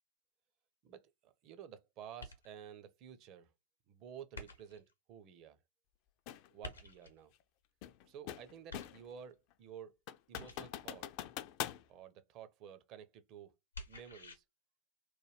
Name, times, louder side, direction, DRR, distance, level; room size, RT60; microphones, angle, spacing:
voice 1, 0.8-3.5 3.9-5.6 6.5-7.3 8.1-10.0 10.3-11.1 11.9-13.5 13.9-14.4, right 8 dB, 40° right, 0.5 m, -52 dB
sound 1, 2.2-2.7 4.3-4.9 6.6-7.3 8.7-9.3 10.3-10.9 13.7-14.4, left 2 dB, 75° left, 0.7 m, -50 dB
sound 2, 6.3-6.5 7.8-9.1 9.5-9.6 10.1-11.8, left 12 dB, 45° left, 0.3 m, -43 dB
3.1 x 2.2 x 3.0 m
figure-of-eight pair, 90°, 0 cm